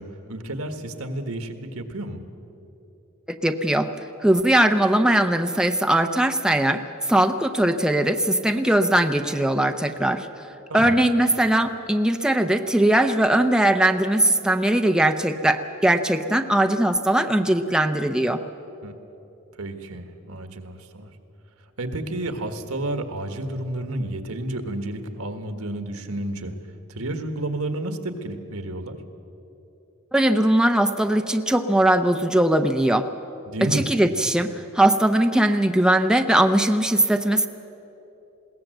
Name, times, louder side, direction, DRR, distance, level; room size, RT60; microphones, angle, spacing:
voice 1, 0.0-2.2 10.7-11.0 18.8-18.9 19.6-21.1 21.8-26.5 26.9-29.0 33.4-33.8, right 1 dB, 80° right, 7 dB, 1.6 m, -31 dB
voice 2, 3.4-3.9 4.2-6.8 7.1-10.3 10.7-18.4 30.1-33.1 33.6-37.5, right 1 dB, 5° right, 6 dB, 0.6 m, -20 dB
21.0 x 17.0 x 7.8 m, 3.0 s
head